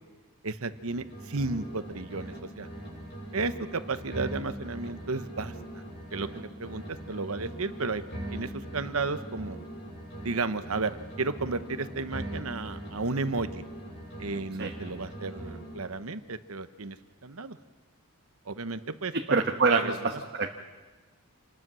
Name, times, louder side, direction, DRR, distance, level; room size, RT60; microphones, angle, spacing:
voice 1, 0.4-2.7 3.3-5.5 6.1-8.0 8.3-9.6 10.2-13.6 14.2-17.0 17.2-17.6 18.5-19.4 19.7-19.9, right 3 dB, 75° right, 12 dB, 1.0 m, -33 dB
sound 1, 0.7-2.4 2.6-6.4 6.6-10.4 10.6-14.4 14.6-16.0, right 1 dB, 50° left, 6.1 m, -41 dB
voice 2, 19.1-20.5, right 4 dB, 50° right, 3 dB, 1.2 m, -26 dB
27.5 x 20.5 x 6.3 m, 1.3 s
head